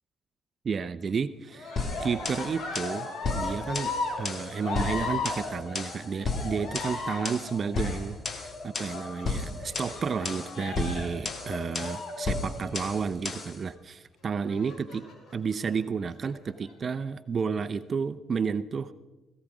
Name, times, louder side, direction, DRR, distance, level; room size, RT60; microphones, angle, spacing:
voice 1, 0.6-15.0 15.3-18.9, right 6 dB, 40° right, 12 dB, 0.6 m, -32 dB
Cheering, 1.5-13.2 14.5-15.3 16.1-16.7, left 3 dB, 65° left, 4.2 m, -37 dB
sound 1, 1.8-13.6, left 4 dB, 40° left, 1.7 m, -34 dB
17.5 x 16.5 x 4.9 m, 1.1 s
cardioid pair, 100°, 0 cm